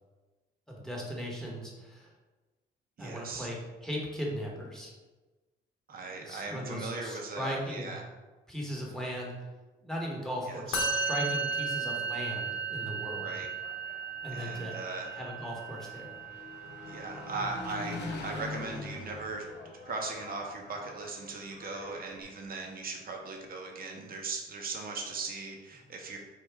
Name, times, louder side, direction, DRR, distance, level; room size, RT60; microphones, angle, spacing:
voice 1, 0.7-2.1 3.0-4.9 6.1-8.0 8.5-9.3 9.8-13.3 14.2-14.8 15.1-16.2, equal, ahead, -3 dB, 1.1 m, -38 dB
voice 2, 3.0-3.5 5.9-8.0 10.5-10.8 13.2-13.5 14.3-15.1 16.9-19.4 19.8-26.2, right 3 dB, 50° right, 2 dB, 0.8 m, -38 dB
Musical instrument, 10.7-18.0, right 4 dB, 90° left, 0.9 m, -35 dB
Engine, 13.5-22.2, left 3 dB, 60° left, 0.8 m, -44 dB
4.8 x 2.5 x 3.4 m, 1.2 s
cardioid pair, 90°, 20 cm